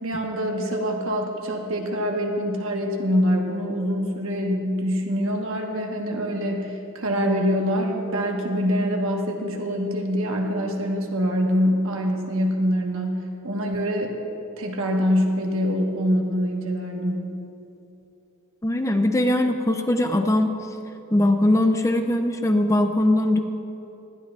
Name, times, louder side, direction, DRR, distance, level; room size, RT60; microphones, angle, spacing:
voice 1, 0.0-14.2 14.6-17.3, equal, 70° right, 1 dB, 1.4 m, -25 dB
voice 2, 18.6-20.5 21.1-23.4, left 1 dB, 15° left, 6 dB, 0.5 m, -20 dB
19.5 x 12.5 x 2.5 m, 2.8 s
head